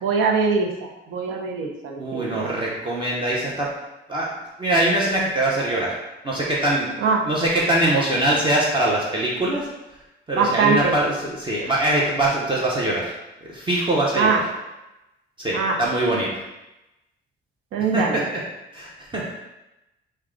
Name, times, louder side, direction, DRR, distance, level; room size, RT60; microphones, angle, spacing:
voice 1, 0.0-2.6 7.0-7.2 10.4-10.9 14.1-14.4 15.5-15.8 17.7-18.2, right 5 dB, 80° right, 1 dB, 0.7 m, -22 dB
voice 2, 2.0-3.7 4.1-4.3 4.6-5.9 6.2-6.9 7.3-9.7 10.3-13.1 13.5-14.4 15.4-16.4 17.9-18.2 18.7-19.3, right 1 dB, 25° right, -4 dB, 0.8 m, -22 dB
4.6 x 2.2 x 3.7 m, 0.96 s
cardioid pair, 90°, 20 cm